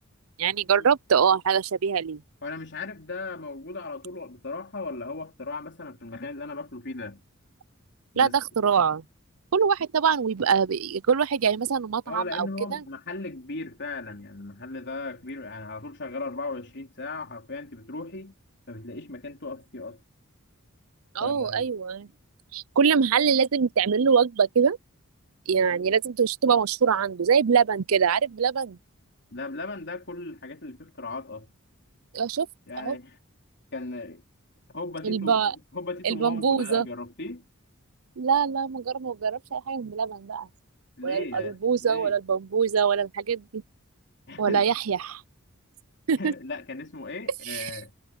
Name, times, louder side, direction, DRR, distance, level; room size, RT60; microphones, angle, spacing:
voice 1, 0.4-2.2 8.2-9.0 9.5-12.5 21.1-22.1 22.5-24.8 25.5-28.8 32.1-32.5 32.8-33.0 35.0-35.5 36.0-36.9 38.2-40.5 41.0-43.6 44.4-45.2 46.1-46.3 47.5-47.7, right 6 dB, 90° right, 0.6 m, -24 dB
voice 2, 2.4-7.2 8.1-8.3 12.1-18.3 18.7-20.0 21.2-21.7 25.7-26.0 29.3-31.5 32.7-33.2 33.7-34.2 34.7-37.4 41.0-42.1 44.3-44.6 46.2-47.9, left 3 dB, 55° left, 3.6 m, -37 dB
head